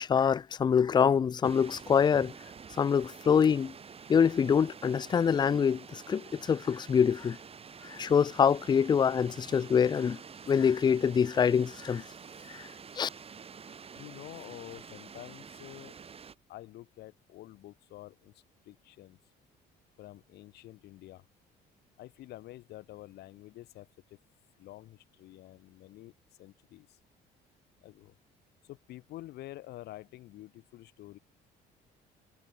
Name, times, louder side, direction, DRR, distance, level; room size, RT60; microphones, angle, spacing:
voice 1, 0.0-2.3 2.8-3.7 4.1-7.4 7.8-10.2 10.5-12.0 12.5-12.7 13.0-13.1, left 7 dB, 25° left, 0.4 m, -25 dB
sound 1, 1.4-16.3, right 6 dB, 35° right, 4.2 m, -48 dB
voice 2, 14.0-15.9 16.5-18.3 18.7-19.2 20.0-21.2 22.0-24.2 24.6-26.1 26.4-27.0 27.8-28.1 28.7-31.2, left 15 dB, 75° left, 2.8 m, -48 dB
cardioid pair, 110°, 17 cm